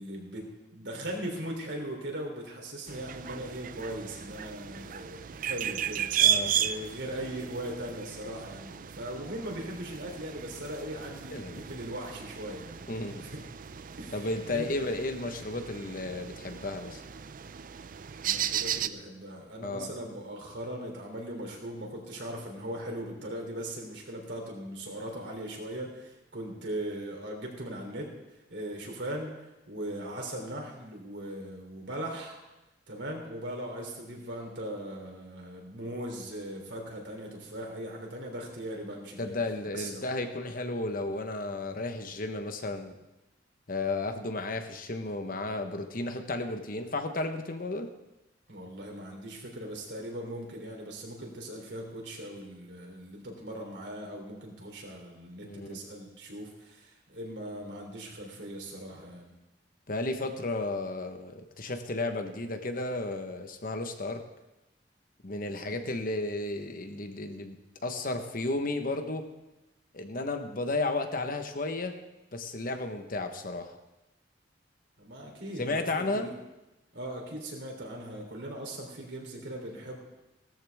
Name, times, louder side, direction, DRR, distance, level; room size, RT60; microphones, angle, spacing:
voice 1, 0.0-12.9 13.2-13.4 14.0-14.2 14.5-14.7 18.2-28.1 28.5-29.3 29.7-32.4 32.9-39.3 39.7-40.0 48.5-59.3 65.6-65.7 75.0-76.3 76.9-80.0, right 1 dB, 70° right, 1 dB, 3.3 m, -39 dB
sound 1, 2.9-18.9, right 9 dB, 50° right, 0.4 m, -34 dB
voice 2, 6.2-6.6 11.3-11.6 12.9-13.3 14.1-17.0 19.6-19.9 39.2-42.9 43.7-47.9 55.4-55.8 59.9-64.2 65.2-69.3 69.9-72.0 72.3-73.8 75.6-76.3, left 2 dB, 50° left, 7 dB, 1.2 m, -33 dB
17.5 x 13.5 x 3.5 m, 0.98 s
head